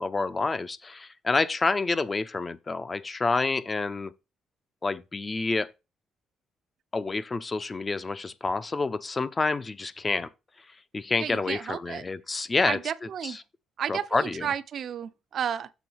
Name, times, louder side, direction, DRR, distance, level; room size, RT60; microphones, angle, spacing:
voice 1, 0.0-4.1 4.8-5.7 6.9-10.3 10.9-12.8 13.2-13.4 13.9-14.5, left 3 dB, 25° left, 0.6 m, -28 dB
voice 2, 11.2-12.1 12.6-13.4 13.8-15.7, right 8 dB, 60° right, 0.5 m, -32 dB
7.0 x 3.8 x 6.1 m
cardioid pair, 90°, 0 cm